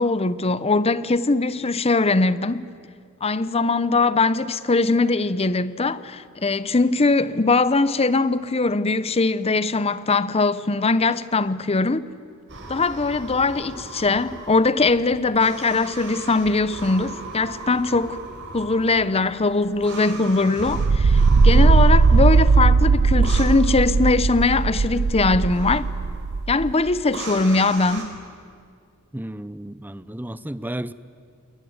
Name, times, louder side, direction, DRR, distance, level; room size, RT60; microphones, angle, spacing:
voice 1, 0.0-2.7 3.2-12.1 12.7-18.2 18.5-25.9 26.5-28.2, left 3 dB, 30° left, 0.7 m, -21 dB
sound 1, 12.5-28.0, right 3 dB, 60° right, 4.6 m, -38 dB
sound 2, 20.7-26.7, right 4 dB, 85° right, 0.6 m, -18 dB
voice 2, 21.3-21.6 29.1-30.9, right 1 dB, 10° right, 0.6 m, -32 dB
28.5 x 21.0 x 9.6 m
head